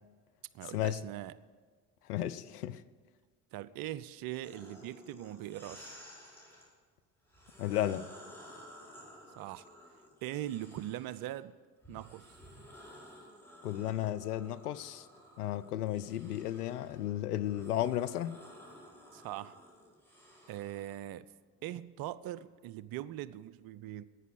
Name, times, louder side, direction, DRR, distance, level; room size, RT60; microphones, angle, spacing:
voice 1, 0.5-1.3 3.5-6.0 9.4-9.7 10.2-11.6 11.9-12.3 19.1-19.6 20.5-21.3 21.6-24.0, right 13 dB, 50° right, 0.6 m, -41 dB
voice 2, 2.1-2.8 7.6-8.1 13.6-15.1 15.4-18.4, left 12 dB, 80° left, 0.6 m, -34 dB
sound 1, 4.4-6.7 7.3-11.3 11.8-21.0, equal, 5° left, 5.2 m, -54 dB
11.0 x 9.3 x 9.4 m
figure-of-eight pair, 50°, 45 cm